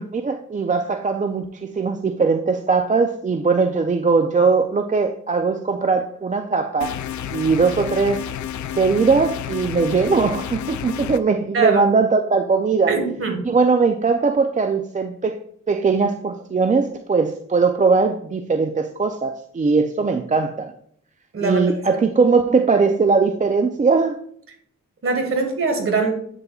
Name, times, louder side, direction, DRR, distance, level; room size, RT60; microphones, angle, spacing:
voice 1, 0.1-7.0 7.3-8.2 8.7-12.9 13.5-20.7 21.4-24.2, right 4 dB, 25° right, 6 dB, 0.4 m, -20 dB
sound 1, 6.8-11.2, left 10 dB, 70° left, 0.5 m, -30 dB
voice 2, 12.9-13.4 21.3-21.7 25.0-26.1, right 4 dB, 45° right, 4 dB, 1.6 m, -22 dB
8.5 x 6.7 x 2.3 m, 0.63 s
wide cardioid pair, 115°, 30 cm